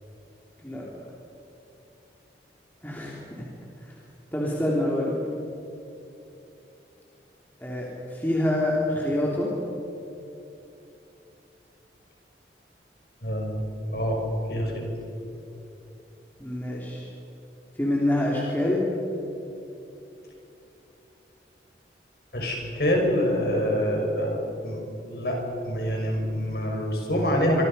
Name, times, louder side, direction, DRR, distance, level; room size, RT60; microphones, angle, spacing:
voice 1, 2.8-3.5 4.3-5.1 7.6-9.5 16.4-17.1 17.8-18.9, left 1 dB, 10° left, -4 dB, 3.1 m, -26 dB
voice 2, 13.2-13.6 13.9-14.2 14.5-14.9 22.3-24.4 24.6-25.4 25.6-27.7, equal, 60° left, 1 dB, 5.7 m, -26 dB
26.0 x 24.5 x 5.5 m, 2.9 s
head